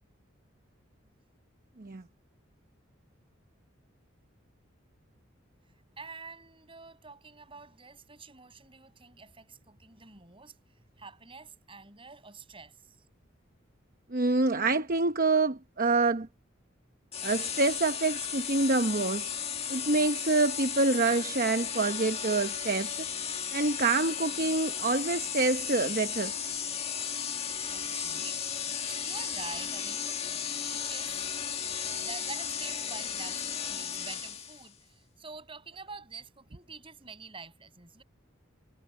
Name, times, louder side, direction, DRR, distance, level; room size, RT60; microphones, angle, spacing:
voice 1, 6.0-10.6 10.9-13.1 27.2-31.2 31.9-38.0, right 4 dB, 25° right, 7.8 m, -47 dB
voice 2, 14.1-16.3 17.2-19.3 19.7-23.1 23.5-26.4, right 3 dB, 45° right, 0.9 m, -27 dB
sound 1, 17.1-34.7, left 8 dB, 30° left, 1.8 m, -35 dB
head